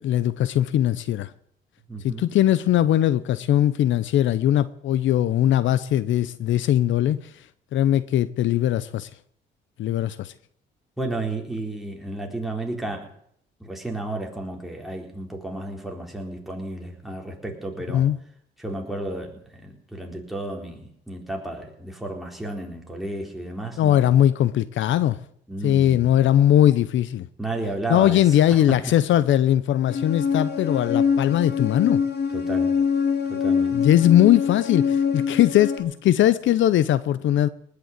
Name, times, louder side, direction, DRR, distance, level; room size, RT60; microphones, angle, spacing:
voice 1, 0.0-1.3 2.0-7.2 7.7-9.1 9.8-10.3 17.9-18.2 23.8-25.2 25.6-27.3 27.9-32.0 33.7-37.5, left 12 dB, 70° left, 0.7 m, -20 dB
voice 2, 1.9-2.3 11.0-13.1 13.6-18.1 18.6-24.1 25.5-26.1 27.4-28.4 28.7-29.0 32.3-32.8 33.3-33.9, right 2 dB, ahead, 4.1 m, -32 dB
sound 1, 29.9-35.8, left 6 dB, 55° left, 3.1 m, -24 dB
19.5 x 6.9 x 9.5 m
cardioid pair, 90°, 20 cm